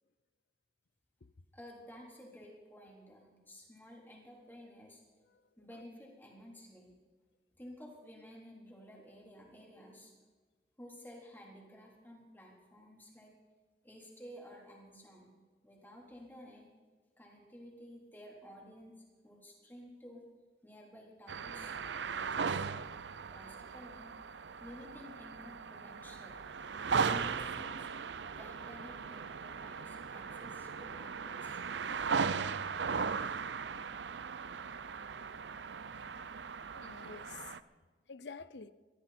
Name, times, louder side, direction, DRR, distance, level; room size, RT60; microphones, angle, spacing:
voice 1, 1.5-5.0 5.6-6.9 7.6-10.1 10.8-13.3 13.8-15.3 15.6-16.7 17.2-20.2 20.6-22.7 23.2-24.1 24.6-26.4 27.0-27.9 28.4-31.6, equal, 10° left, 3.9 m, -53 dB
sound 1, 21.3-37.6, right 5 dB, 85° right, 0.6 m, -38 dB
voice 2, 36.7-37.6 38.1-38.7, left 5 dB, 75° left, 0.7 m, -49 dB
22.0 x 14.5 x 4.4 m
head